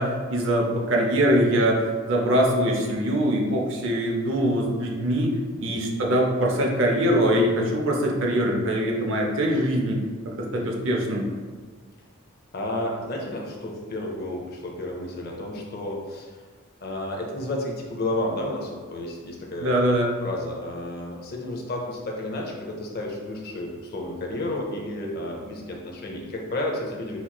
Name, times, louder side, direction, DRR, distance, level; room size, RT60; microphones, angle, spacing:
voice 1, 0.0-10.0 10.3-11.3 19.6-20.1, equal, 65° right, 0 dB, 0.5 m, -23 dB
voice 2, 12.5-16.3 16.8-19.7 20.2-27.2, left 1 dB, 45° left, 0 dB, 0.6 m, -31 dB
4.0 x 2.9 x 2.2 m, 1.5 s
head